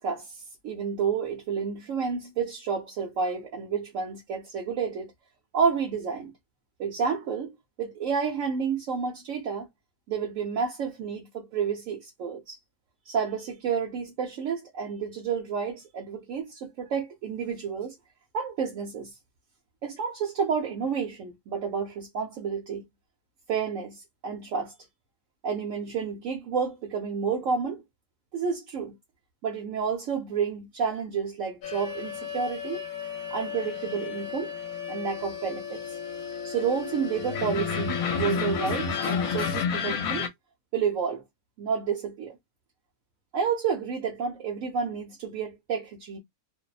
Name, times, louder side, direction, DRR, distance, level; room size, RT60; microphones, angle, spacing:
voice 1, 0.0-5.1 5.5-6.3 6.8-9.7 10.1-12.6 13.0-18.0 18.3-19.2 19.8-22.8 23.5-24.7 25.4-27.8 28.3-29.0 29.4-32.8 33.3-34.5 34.9-36.0 36.4-40.3 40.7-41.2 41.6-42.3 43.3-46.2, right 6 dB, 65° right, 1.0 m, -30 dB
sound 1, 31.6-40.3, left 6 dB, 75° left, 1.0 m, -31 dB
2.7 x 2.0 x 2.3 m
omnidirectional pair, 1.6 m